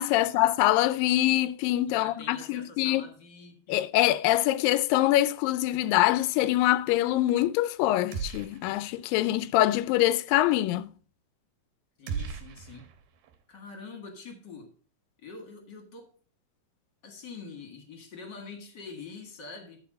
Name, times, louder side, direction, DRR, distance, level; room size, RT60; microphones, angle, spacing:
voice 1, 0.0-3.0 3.7-10.9, left 15 dB, 85° left, 2.2 m, -24 dB
voice 2, 1.9-3.9 12.0-12.9 13.5-14.7 15.2-16.1 17.0-19.8, left 4 dB, 40° left, 1.8 m, -45 dB
sound 1, 8.1-9.0 9.3-9.4 12.1-13.4, right 6 dB, 85° right, 2.8 m, -37 dB
12.5 x 4.3 x 5.2 m
omnidirectional pair, 4.0 m